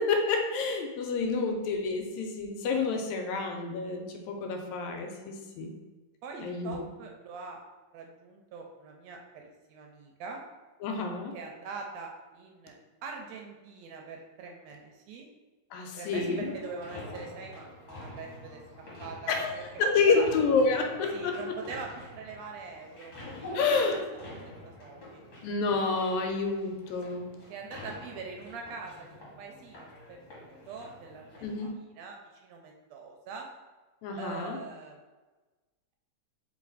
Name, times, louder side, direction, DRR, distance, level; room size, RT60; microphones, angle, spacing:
voice 1, 0.0-5.7 6.4-6.8 10.8-11.3 15.7-16.5 19.3-21.3 23.5-24.0 25.4-27.2 31.4-31.7 34.0-34.6, left 4 dB, 80° left, 3 dB, 1.9 m, -29 dB
voice 2, 6.2-7.6 7.9-10.4 11.3-12.7 13.0-15.3 16.0-18.6 19.0-20.2 21.1-24.0 24.3-25.2 27.1-27.2 27.5-31.5 31.7-32.2 32.4-33.5 34.2-35.0, right 4 dB, 80° right, 1 dB, 1.6 m, -43 dB
sound 1, 16.1-31.7, left 1 dB, 40° left, 1.7 m, -46 dB
4.2 x 3.1 x 3.9 m, 1.2 s
omnidirectional pair, 3.3 m